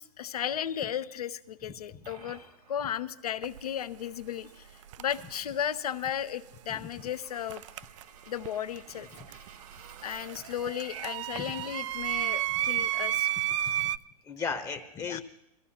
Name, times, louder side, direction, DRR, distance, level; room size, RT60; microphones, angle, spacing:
voice 1, 0.0-4.7 5.0-7.6 8.3-9.4 10.0-13.3 15.1-15.2, left 9 dB, 70° left, 11 dB, 0.9 m, -35 dB
Coin (dropping), 1.7-10.6, right 6 dB, 70° right, 2.2 m, -56 dB
sound 1, 3.4-3.6 4.8-5.4 7.5-8.5 8.7-14.0, right 13 dB, 50° right, 0.5 m, -32 dB
voice 2, 14.3-15.2, left 5 dB, 15° left, 6 dB, 1.0 m, -36 dB
22.0 x 14.5 x 2.9 m, 0.87 s
hypercardioid pair, 115°, 20 cm